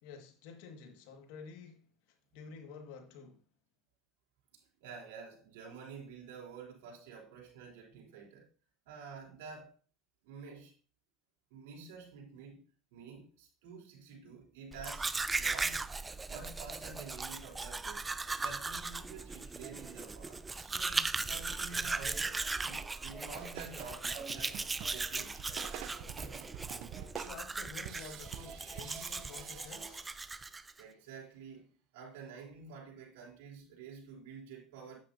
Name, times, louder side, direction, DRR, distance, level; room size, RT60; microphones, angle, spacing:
voice 1, 0.0-3.4 27.1-30.1, left 5 dB, 75° left, 1.8 m, -50 dB
voice 2, 4.5-8.5 8.9-9.7 10.2-10.7 11.5-12.6 12.9-15.9 16.3-18.1 18.4-25.5 30.8-35.0, right 5 dB, 85° right, 3.6 m, -49 dB
Domestic sounds home sounds, 14.7-30.8, right 3 dB, 15° right, 0.5 m, -38 dB
sound 1, 17.9-30.0, right 4 dB, 40° right, 4.3 m, -55 dB
sound 2, 23.0-30.5, right 12 dB, 65° right, 0.8 m, -49 dB
9.1 x 8.6 x 2.7 m
supercardioid pair, 105°, 0 cm